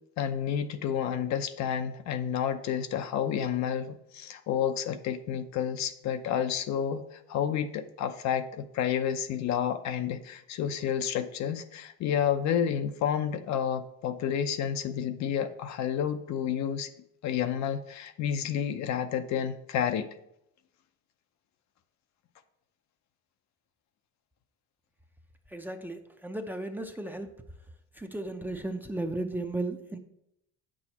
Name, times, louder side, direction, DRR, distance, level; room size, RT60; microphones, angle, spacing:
voice 1, 0.2-16.9 17.2-20.1, left 8 dB, 65° left, 9 dB, 0.6 m, -30 dB
voice 2, 25.5-27.3 27.9-30.0, right 2 dB, 5° right, 6 dB, 0.6 m, -35 dB
8.6 x 6.2 x 2.9 m, 0.80 s
cardioid pair, 100°, 31 cm